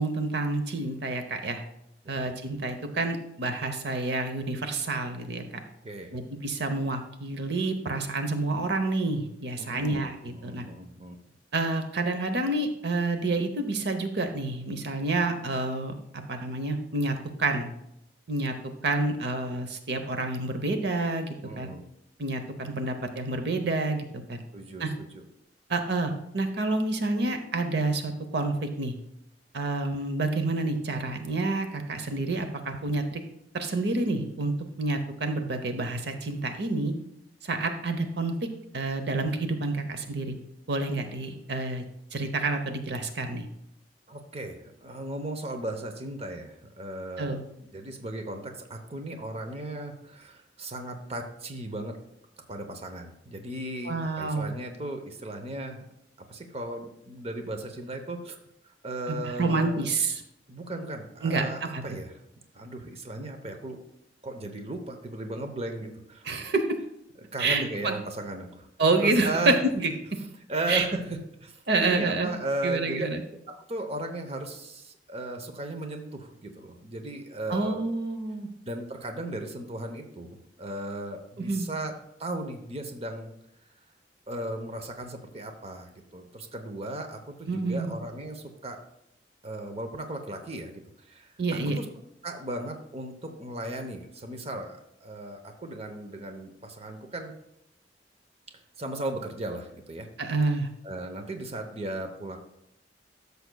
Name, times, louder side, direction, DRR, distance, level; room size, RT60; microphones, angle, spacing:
voice 1, 0.0-1.6 2.1-5.4 6.1-10.7 11.5-15.9 16.3-17.7 18.3-18.5 18.8-21.7 22.2-24.4 24.8-24.9 25.7-28.9 29.5-33.2 33.5-36.9 37.4-38.3 38.7-40.3 40.7-41.8 42.1-43.5 47.2-47.4 53.8-54.5 59.4-60.2 61.2-61.4 61.7-61.8 66.2-66.6 67.4-67.9 68.8-69.9 70.7-70.8 71.7-72.3 72.6-73.2 77.5-78.5 81.4-81.7 87.5-87.9 91.4-91.8 100.2-100.7, right 2 dB, 65° right, 7 dB, 0.8 m, -28 dB
voice 2, 5.8-6.2 9.6-11.2 21.4-21.9 24.5-24.9 25.1-25.2 44.1-47.4 47.6-51.9 52.5-55.9 56.3-58.4 58.8-59.9 60.5-62.1 62.5-63.8 64.2-66.4 67.3-68.7 69.0-69.6 70.5-73.1 73.5-77.8 78.7-81.9 82.2-83.3 84.3-88.8 89.4-90.8 91.1-91.9 92.2-97.3 98.8-100.1 100.8-102.4, right 1 dB, 35° right, 5 dB, 0.8 m, -36 dB
13.0 x 6.7 x 2.3 m, 0.78 s
head